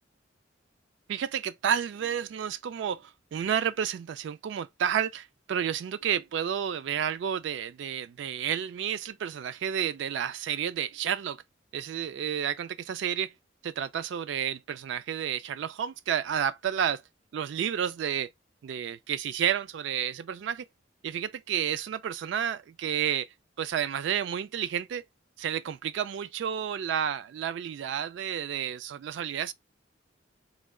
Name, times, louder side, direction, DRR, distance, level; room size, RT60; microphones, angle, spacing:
voice 1, 1.1-11.4 11.7-13.3 13.6-17.0 17.3-18.3 18.6-20.7 21.0-23.3 23.6-25.0 25.4-29.5, right 8 dB, 70° right, 0.3 m, -31 dB
3.7 x 3.1 x 2.2 m
head